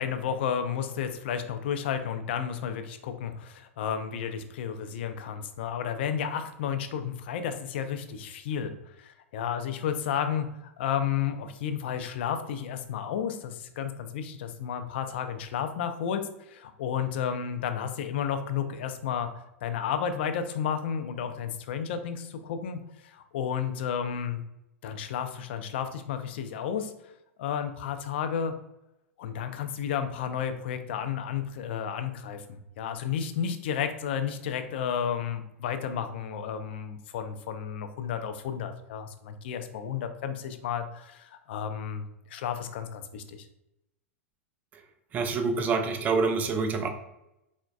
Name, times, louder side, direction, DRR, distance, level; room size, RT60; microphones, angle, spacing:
voice 1, 0.0-8.7 9.0-19.3 19.6-24.4 24.8-26.9 27.4-28.5 29.2-43.4, left 8 dB, 50° left, 8 dB, 0.3 m, -32 dB
voice 2, 45.1-46.9, right 4 dB, 20° right, 6 dB, 0.3 m, -26 dB
3.8 x 2.1 x 2.4 m, 0.88 s
figure-of-eight pair, 95°, 7 cm